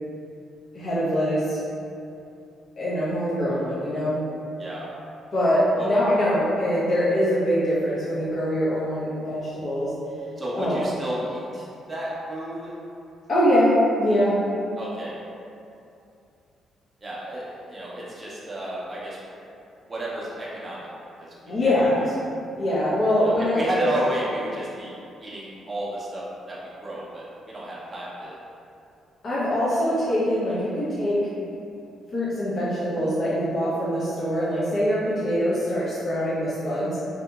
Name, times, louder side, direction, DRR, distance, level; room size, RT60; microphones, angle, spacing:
voice 1, 0.7-1.6 2.8-4.2 5.3-9.9 10.5-10.8 13.3-14.4 21.5-22.0 22.6-23.9 29.2-31.3 32.1-37.0, equal, 50° left, -11 dB, 0.7 m, -23 dB
voice 2, 10.4-12.7 14.8-15.2 17.0-19.2 19.9-21.3 21.6-21.9 23.2-24.9 25.2-28.4, right 1 dB, 25° right, -7 dB, 0.5 m, -32 dB
2.7 x 2.7 x 2.3 m, 2.6 s
cardioid pair, 90°, 0 cm